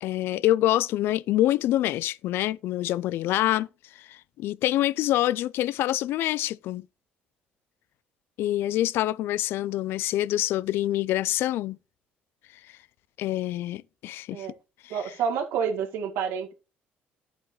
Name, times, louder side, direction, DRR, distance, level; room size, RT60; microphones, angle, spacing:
voice 1, 0.0-6.9 8.4-11.8 13.2-14.5 14.8-15.0, left 14 dB, 70° left, 0.4 m, -26 dB
voice 2, 14.9-16.5, right 7 dB, 85° right, 1.9 m, -28 dB
11.0 x 8.1 x 3.1 m
cardioid pair, 145°, 4 cm